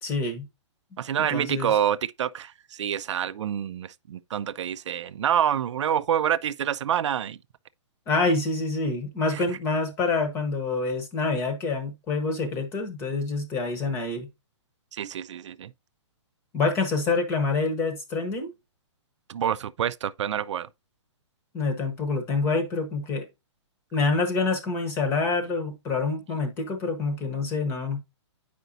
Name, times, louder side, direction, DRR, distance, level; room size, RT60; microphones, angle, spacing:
voice 1, 0.0-0.4 1.3-1.7 8.1-14.3 16.5-18.5 21.5-23.3 23.9-28.0, left 3 dB, 15° left, 0.9 m, -26 dB
voice 2, 1.0-7.4 14.9-15.7 19.3-20.7, right 9 dB, 75° right, 0.4 m, -27 dB
7.9 x 5.0 x 2.6 m
hypercardioid pair, 165°, 15 cm